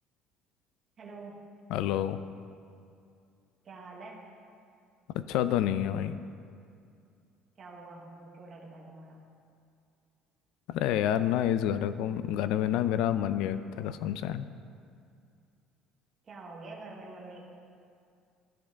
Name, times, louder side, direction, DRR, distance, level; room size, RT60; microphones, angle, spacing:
voice 1, 1.0-1.5 3.6-4.3 7.6-9.2 16.2-17.4, right 3 dB, 30° right, -2 dB, 1.1 m, -46 dB
voice 2, 1.7-2.2 5.1-6.2 10.7-14.5, left 11 dB, 65° left, 13 dB, 0.3 m, -28 dB
13.0 x 5.0 x 3.5 m, 2.4 s
cardioid pair, 170°, 0 cm